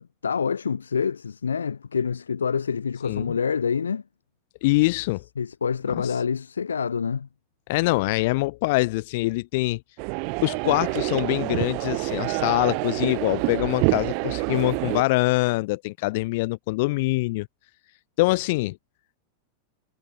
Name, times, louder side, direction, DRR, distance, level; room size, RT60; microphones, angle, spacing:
voice 1, 0.0-4.0 5.4-7.3, left 6 dB, 70° left, 2.8 m, -27 dB
voice 2, 4.6-5.2 6.0-6.1 7.7-9.8 10.4-17.5 18.2-18.8, left 22 dB, 50° left, 3.1 m, -24 dB
sound 1, 10.0-15.0, right 40 dB or more, 45° right, 1.0 m, -27 dB
figure-of-eight pair, 90°, 0 cm